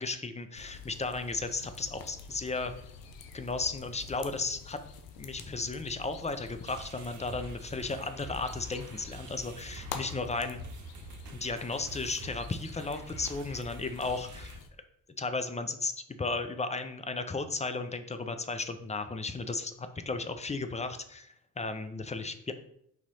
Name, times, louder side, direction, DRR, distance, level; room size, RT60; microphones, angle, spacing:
voice 1, 0.0-2.7 3.3-4.8 5.2-10.6 11.3-14.6 15.2-15.9 16.2-22.5, left 3 dB, 20° left, 9 dB, 0.5 m, -35 dB
sound 1, 0.5-14.7, left 5 dB, 85° left, 0.6 m, -47 dB
sound 2, 6.6-14.6, right 2 dB, 55° right, 0.8 m, -47 dB
4.2 x 3.0 x 4.1 m, 0.72 s
supercardioid pair, 50°, 35 cm